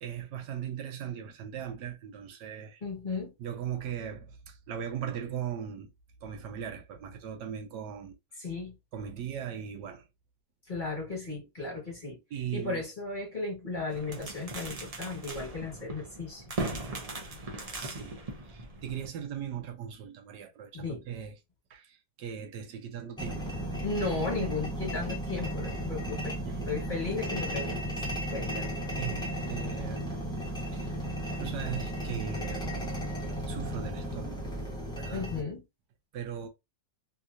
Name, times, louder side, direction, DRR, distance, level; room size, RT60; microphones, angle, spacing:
voice 1, 0.0-2.8 3.4-5.9 6.2-8.2 8.9-10.0 12.3-12.8 17.8-18.2 18.4-21.3 21.7-23.6 26.4-26.7 28.5-30.2 30.7-30.9 31.4-32.7 33.5-34.5 34.9-35.3 36.1-36.5, right 8 dB, 80° right, 1.3 m, -39 dB
voice 2, 2.8-3.3 8.4-8.7 10.7-12.2 12.5-16.4 20.7-21.0 23.8-26.4 26.6-28.0 28.3-28.6 35.1-35.6, left 3 dB, 30° left, 1.4 m, -35 dB
sound 1, 13.9-19.1, right 2 dB, 50° right, 0.4 m, -39 dB
sound 2, 23.2-35.4, equal, 5° left, 0.5 m, -35 dB
3.3 x 2.9 x 2.4 m
omnidirectional pair, 1.9 m